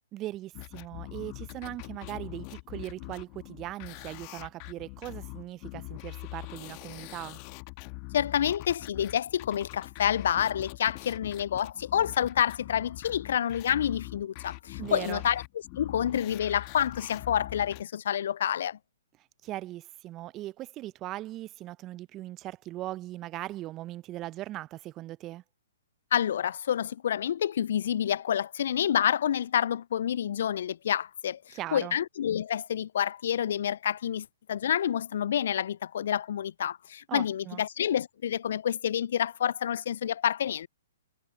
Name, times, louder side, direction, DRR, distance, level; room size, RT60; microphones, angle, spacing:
voice 1, 0.1-7.4 14.8-15.2 19.4-25.4 31.5-32.0 37.1-37.6, right 15 dB, 25° right, 0.6 m, -39 dB
sound 1, 0.5-17.8, left 32 dB, 35° left, 1.4 m, -43 dB
voice 2, 8.1-15.4 15.8-18.8 26.1-40.7, left 9 dB, 60° left, 0.3 m, -28 dB
figure-of-eight pair, 120°, 0 cm